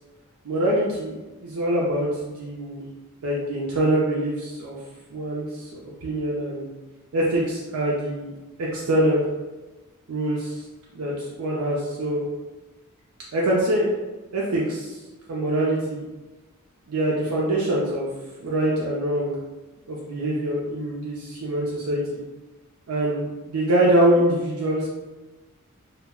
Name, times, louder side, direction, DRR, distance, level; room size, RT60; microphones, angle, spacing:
voice 1, 0.5-1.2 1.4-2.8 3.2-4.8 5.1-6.7 7.1-8.3 8.6-9.2 10.1-10.6 10.9-12.2 13.3-13.9 14.3-14.9 15.3-16.0 16.9-18.1 18.4-19.3 19.9-22.2 22.9-24.9, right 1 dB, 75° right, -4 dB, 0.4 m, -24 dB
2.2 x 2.0 x 3.5 m, 1.2 s
head